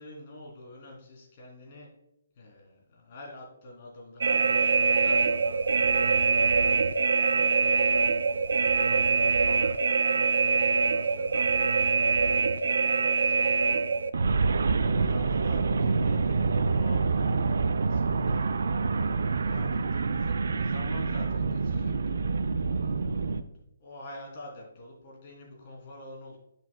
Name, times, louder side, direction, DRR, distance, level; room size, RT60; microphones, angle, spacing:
voice 1, 0.0-1.9 2.3-5.6 6.7-8.2 8.5-13.9 14.2-17.1 17.4-18.4 19.2-21.9 22.7-23.3 23.8-26.4, left 1 dB, 40° left, -2 dB, 3.1 m, -47 dB
sound 1, 4.2-23.4, right 4 dB, 60° right, 0.5 m, -25 dB
10.5 x 7.5 x 2.3 m, 0.83 s
figure-of-eight pair, 135°, 0 cm